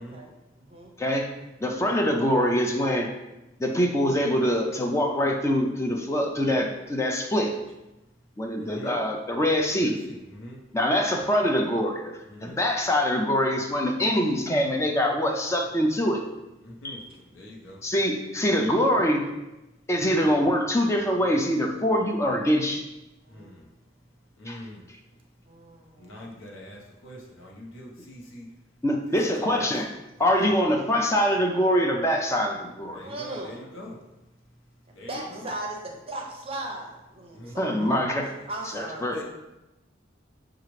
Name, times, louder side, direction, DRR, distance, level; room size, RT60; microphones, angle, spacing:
voice 1, 0.0-0.9 23.2-23.5 25.5-26.2 33.0-33.6 35.1-38.1 38.5-39.2, right 2 dB, 30° right, 0 dB, 0.6 m, -38 dB
voice 2, 1.0-1.3 1.6-3.1 3.6-7.5 8.4-10.0 10.7-16.2 16.8-17.0 17.8-19.2 19.9-22.8 24.5-24.6 28.8-29.9 30.2-33.0 37.6-38.3 38.7-39.2, equal, 15° left, 2 dB, 0.4 m, -24 dB
voice 3, 8.6-9.0 9.7-10.6 12.2-12.6 16.6-17.8 23.3-23.7 24.4-25.2 26.0-28.5 29.1-29.8 32.9-34.0 34.9-35.5 37.3-37.9 39.1-39.2, left 1 dB, 90° left, -1 dB, 0.9 m, -43 dB
5.9 x 2.4 x 3.1 m, 0.98 s
head